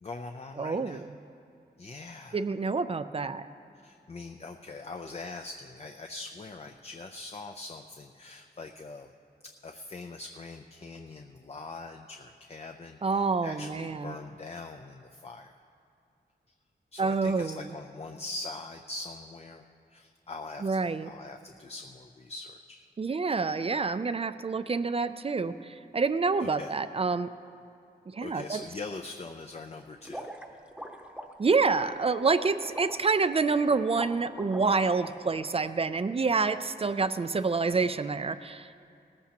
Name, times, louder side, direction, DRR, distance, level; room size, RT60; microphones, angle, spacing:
voice 1, 0.0-1.0 1.8-2.4 3.8-9.1 9.6-15.5 16.9-19.6 19.9-22.9 26.4-26.7 28.2-30.3, left 3 dB, 35° left, 5 dB, 0.5 m, -42 dB
voice 2, 0.6-1.0 2.3-3.4 13.0-14.2 17.0-17.6 20.6-21.1 23.0-27.3 28.1-28.6 31.4-38.8, right 4 dB, 35° right, 12 dB, 0.4 m, -27 dB
sound 1, 30.0-35.1, right 1 dB, 5° right, 0.9 m, -43 dB
18.5 x 14.0 x 2.9 m, 2.4 s
wide cardioid pair, 115°, 18 cm